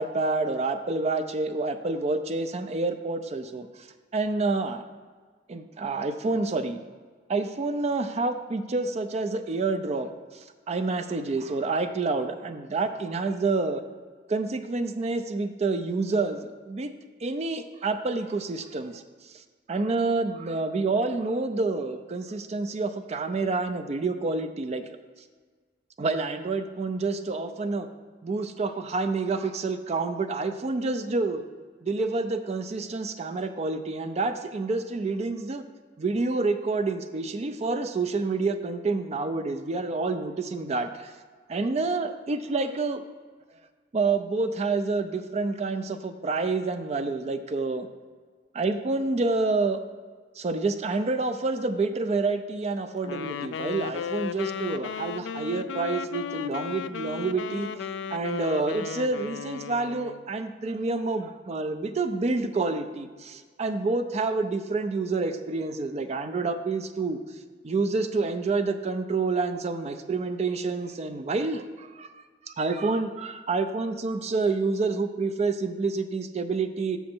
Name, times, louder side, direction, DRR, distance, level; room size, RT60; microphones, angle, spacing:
voice 1, 0.0-3.9 4.1-4.8 5.5-6.8 7.3-10.1 10.7-13.8 14.3-16.9 17.2-19.0 19.7-24.8 26.0-27.9 28.2-31.4 31.8-35.6 36.0-41.1 41.5-43.0 43.9-47.9 48.5-49.8 50.4-67.2 67.6-77.0, right 3 dB, 40° right, 9 dB, 0.4 m, -28 dB
Wind instrument woodwind instrument, 53.0-60.3, left 7 dB, 85° left, 0.3 m, -35 dB
6.9 x 6.3 x 4.3 m, 1.5 s
head